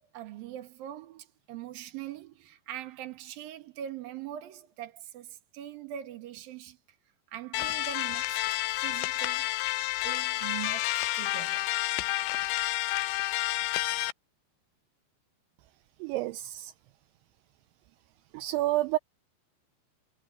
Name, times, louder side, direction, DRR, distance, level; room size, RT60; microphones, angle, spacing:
voice 1, 0.0-6.8 7.3-9.5 10.0-11.7, right 11 dB, 60° right, 3.1 m, -42 dB
sound 1, 7.5-14.1, left 18 dB, 80° left, 2.7 m, -30 dB
voice 2, 16.0-16.7 18.3-19.0, right 16 dB, 80° right, 2.9 m, -29 dB
omnidirectional pair, 5.4 m